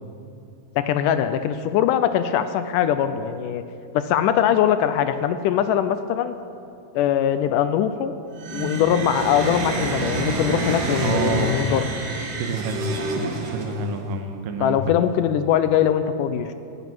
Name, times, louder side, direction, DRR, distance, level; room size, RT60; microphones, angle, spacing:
voice 1, 0.8-3.6 3.9-6.4 6.9-8.1 8.5-11.8 14.6-16.5, left 9 dB, 80° left, 10 dB, 2.0 m, -21 dB
sound 1, 8.3-14.0, right 3 dB, 50° right, 2.4 m, -28 dB
voice 2, 11.0-11.6 12.4-12.9 13.5-14.8, right 4 dB, 75° right, 6 dB, 2.7 m, -27 dB
12.5 x 12.0 x 9.2 m, 2.6 s
omnidirectional pair, 4.0 m